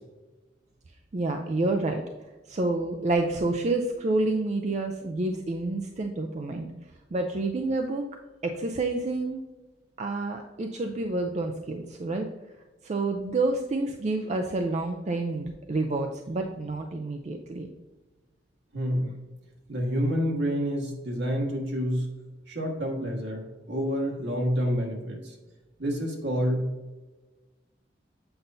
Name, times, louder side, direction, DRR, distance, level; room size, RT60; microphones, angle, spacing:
voice 1, 1.1-2.0 2.5-6.7 7.1-8.1 8.4-9.4 10.0-12.3 12.8-17.7, right 2 dB, 40° right, 4 dB, 0.4 m, -28 dB
voice 2, 18.7-19.1 19.7-22.1 22.5-25.3 25.8-26.7, equal, 70° right, 0 dB, 1.6 m, -28 dB
7.8 x 5.4 x 2.6 m, 1.2 s
head